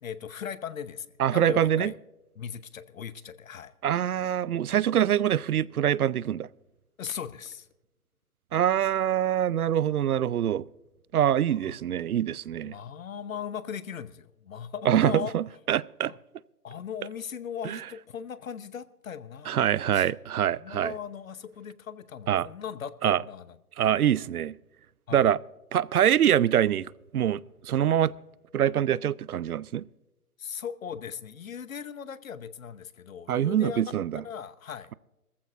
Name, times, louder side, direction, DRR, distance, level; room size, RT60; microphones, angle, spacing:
voice 1, 0.0-2.0 2.3-3.7 7.0-7.7 11.5-11.7 12.6-15.3 16.1-16.2 16.6-20.1 20.6-23.6 25.1-25.3 30.4-33.8 34.2-34.9, left 8 dB, 60° left, 1.0 m, -38 dB
voice 2, 1.2-1.9 3.8-6.5 8.5-10.6 11.1-12.7 14.9-16.1 17.7-17.8 19.5-20.9 22.3-22.5 23.0-23.2 23.8-24.5 25.1-25.4 25.7-27.4 27.7-28.1 28.5-29.8 33.3-34.2, right 10 dB, 70° right, 0.6 m, -24 dB
20.0 x 14.5 x 2.5 m
hypercardioid pair, 155°, 46 cm